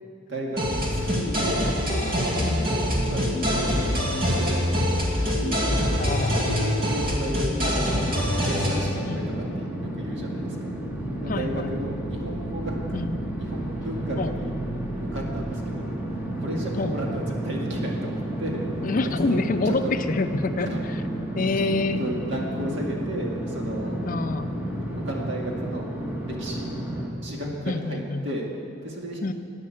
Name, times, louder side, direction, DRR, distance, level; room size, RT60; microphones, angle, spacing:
voice 1, 0.3-1.7 2.1-5.0 5.5-6.1 6.4-8.1 8.3-10.7 11.2-13.0 13.4-14.5 15.0-19.9 20.7-20.9 21.6-21.7 22.0-24.0 24.9-25.9 26.2-26.7 27.2-28.5 28.8-29.2, right 1 dB, 60° right, -1 dB, 2.0 m, -34 dB
sound 1, 0.6-8.9, equal, 45° right, 2.0 m, -24 dB
voice 2, 6.0-6.5 9.1-9.2 11.3-11.7 12.9-13.2 14.2-14.3 16.8-16.9 18.8-20.7 21.3-22.0 24.1-24.5 27.7-28.2 29.2-29.3, left 3 dB, 40° left, 9 dB, 0.5 m, -27 dB
sound 2, 7.9-27.1, right 1 dB, 10° right, 1.5 m, -32 dB
sound 3, 10.9-16.1, equal, 20° left, 3.2 m, -40 dB
11.0 x 9.3 x 7.7 m, 2.7 s
head